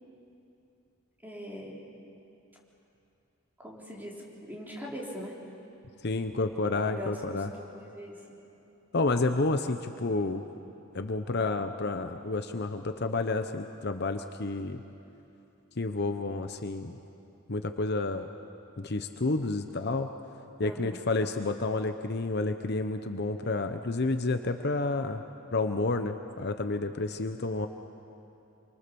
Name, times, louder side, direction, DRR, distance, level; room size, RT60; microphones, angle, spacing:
voice 1, 1.2-1.9 3.6-5.4 6.8-8.3 20.6-21.0, equal, 10° right, -4 dB, 4.0 m, -41 dB
voice 2, 6.0-7.5 8.9-10.4 10.9-14.8 15.8-17.0 17.5-18.3 18.8-20.1 20.6-25.2 25.5-27.7, left 3 dB, 55° left, 7 dB, 0.9 m, -30 dB
27.5 x 24.5 x 7.0 m, 2.8 s
head